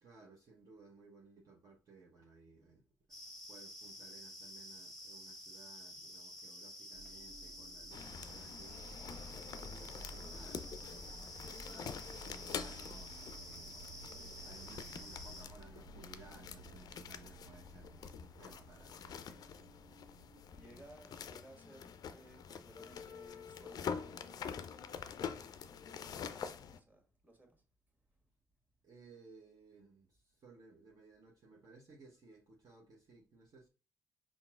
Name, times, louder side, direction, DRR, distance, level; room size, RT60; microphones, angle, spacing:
voice 1, 0.0-2.8 3.5-8.8 9.5-14.1 14.4-19.7 28.8-33.7, right 3 dB, 45° right, 0.9 m, -60 dB
sound 1, 3.1-15.4, left 1 dB, 5° left, 0.9 m, -50 dB
sound 2, 6.9-21.0, right 2 dB, 80° right, 1.1 m, -55 dB
sound 3, 7.9-26.8, left 7 dB, 45° left, 0.4 m, -46 dB
voice 2, 20.5-24.3 24.8-26.2 26.7-27.6, right 1 dB, 20° right, 1.6 m, -60 dB
5.7 x 3.6 x 2.4 m
figure-of-eight pair, 45°, 9 cm